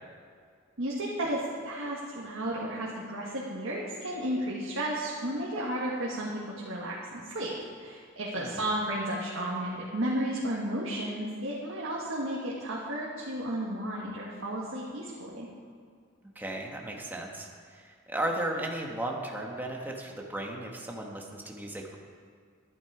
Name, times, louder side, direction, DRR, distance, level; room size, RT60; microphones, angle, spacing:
voice 1, 0.8-7.5 7.8-15.5, right 1 dB, 75° right, -5 dB, 1.6 m, -33 dB
voice 2, 16.3-22.0, right 1 dB, 10° right, 0 dB, 1.3 m, -35 dB
11.0 x 11.0 x 4.9 m, 2.1 s
head